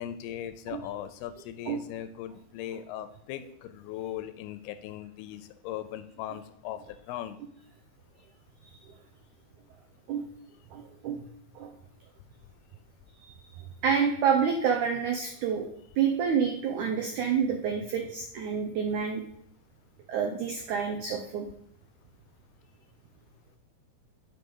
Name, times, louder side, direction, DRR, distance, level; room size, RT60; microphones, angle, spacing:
voice 1, 0.0-7.4, left 11 dB, 85° left, 11 dB, 2.5 m, -39 dB
voice 2, 10.7-11.2 11.5-11.8 13.2-13.4 13.8-15.7 16.0-19.2 20.1-21.4, right 7 dB, 90° right, 3 dB, 1.7 m, -28 dB
8.1 x 5.1 x 5.4 m, 0.73 s
omnidirectional pair, 4.7 m